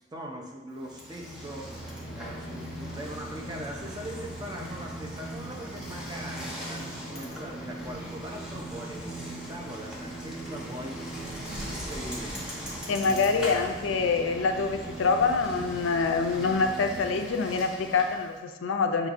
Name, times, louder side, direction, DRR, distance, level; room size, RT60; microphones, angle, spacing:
voice 1, 0.1-1.8 2.1-11.0 11.5-12.7, equal, 20° right, 0 dB, 0.6 m, -41 dB
Bicycle, 0.8-18.3, right 1 dB, 5° right, 0.9 m, -38 dB
voice 2, 12.9-19.1, left 4 dB, 80° left, 5 dB, 0.4 m, -26 dB
6.3 x 3.0 x 2.5 m, 1.2 s
head